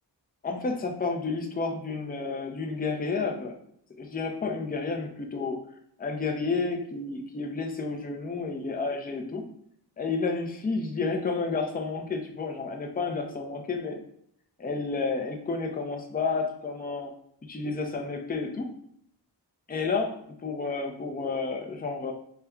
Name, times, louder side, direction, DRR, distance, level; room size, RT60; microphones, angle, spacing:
voice 1, 0.4-3.6 4.0-5.6 6.0-9.4 10.0-14.0 14.6-17.1 17.5-18.7 19.7-22.1, left 4 dB, 20° left, 3 dB, 0.5 m, -31 dB
4.9 x 2.2 x 2.2 m, 0.69 s
wide cardioid pair, 105°, 43 cm